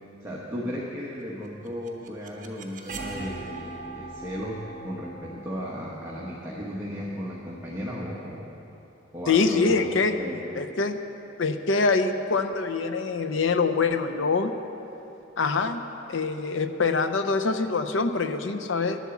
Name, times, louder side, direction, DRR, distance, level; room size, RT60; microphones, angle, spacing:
voice 1, 0.2-8.5 9.1-10.4, equal, 15° right, -5 dB, 1.1 m, -35 dB
sound 1, 1.4-7.3, right 2 dB, 45° right, 1.0 m, -41 dB
voice 2, 9.3-10.2 10.6-11.0 11.4-14.5 15.4-15.8 16.1-19.0, left 4 dB, 70° left, 8 dB, 0.6 m, -24 dB
10.5 x 8.3 x 7.1 m, 3.0 s
head